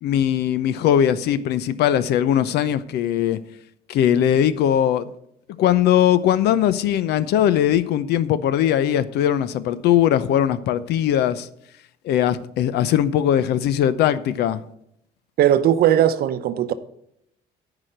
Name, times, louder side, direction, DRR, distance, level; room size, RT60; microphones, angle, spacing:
voice 1, 0.0-3.4 3.9-5.1 5.6-11.5 12.0-14.6, left 10 dB, 75° left, 0.7 m, -20 dB
voice 2, 15.4-16.7, right 11 dB, 65° right, 0.8 m, -18 dB
9.7 x 5.0 x 7.9 m
cardioid pair, 110°, 17 cm